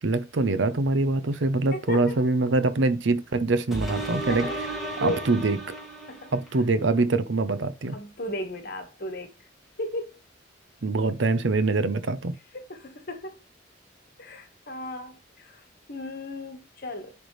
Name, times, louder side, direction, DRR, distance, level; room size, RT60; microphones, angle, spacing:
voice 1, 0.0-4.5 5.0-5.6 6.3-7.9 10.8-12.4, right 3 dB, 70° right, 0.7 m, -24 dB
voice 2, 1.7-2.3 4.3-5.2 6.1-6.3 7.9-9.3 9.8-10.2 12.5-13.4 14.2-17.1, left 1 dB, 50° left, 1.4 m, -35 dB
sound 1, 3.7-6.6 7.2-7.3, right 1 dB, ahead, 1.7 m, -34 dB
10.0 x 3.5 x 3.2 m
head